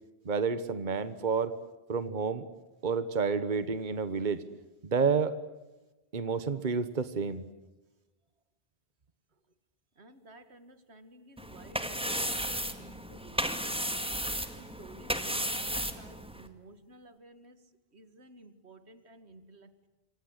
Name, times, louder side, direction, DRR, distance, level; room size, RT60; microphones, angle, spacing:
voice 1, 0.2-1.5 1.9-2.5 2.8-4.4 4.8-5.4 6.1-7.4, right 5 dB, 45° right, 13 dB, 1.4 m, -29 dB
voice 2, 10.0-12.5 12.8-13.6 13.9-14.0 14.5-17.6 17.9-19.9, right 2 dB, 85° right, 11 dB, 2.3 m, -54 dB
sound 1, 11.4-16.5, equal, 5° right, 2.0 m, -34 dB
27.5 x 25.5 x 8.1 m, 1.1 s
omnidirectional pair, 1.1 m